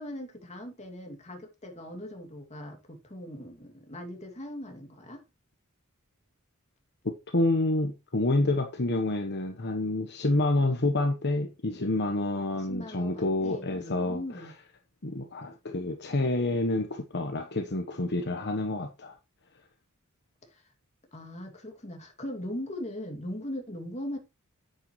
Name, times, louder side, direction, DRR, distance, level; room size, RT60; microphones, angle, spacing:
voice 1, 0.0-5.2 12.5-14.5 20.5-20.6 21.1-24.2, left 1 dB, 30° left, 2.6 m, -40 dB
voice 2, 7.3-14.2 15.0-19.1, left 2 dB, 55° left, 1.2 m, -28 dB
9.6 x 9.1 x 3.2 m
head